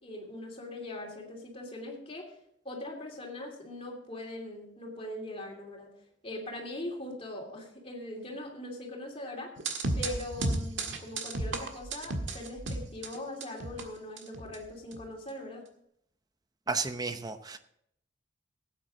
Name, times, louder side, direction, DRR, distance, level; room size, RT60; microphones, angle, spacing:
voice 1, 0.0-2.4 2.6-5.9 6.2-9.5 10.0-15.7, left 1 dB, 30° left, 0 dB, 2.8 m, -41 dB
sound 1, 9.6-13.8 14.2-14.6 14.9-15.0, right 2 dB, 85° right, 1.6 m, -33 dB
voice 2, 16.7-17.6, right 4 dB, 20° right, 9 dB, 0.8 m, -32 dB
16.0 x 9.1 x 3.8 m, 0.72 s
head